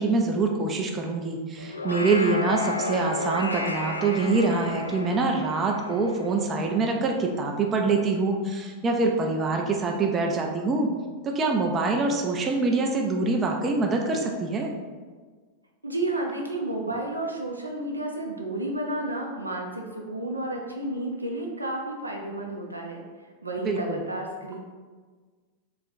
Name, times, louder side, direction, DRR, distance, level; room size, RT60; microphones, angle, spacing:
voice 1, 0.0-10.9 11.2-14.7 23.6-24.0, right 3 dB, 25° right, 1 dB, 0.4 m, -25 dB
sound 1, 1.6-7.1, left 2 dB, 80° left, 0.3 m, -33 dB
voice 2, 15.8-24.6, right 1 dB, 80° right, 0 dB, 0.6 m, -31 dB
3.6 x 2.5 x 4.0 m, 1.5 s
figure-of-eight pair, 90°, 0 cm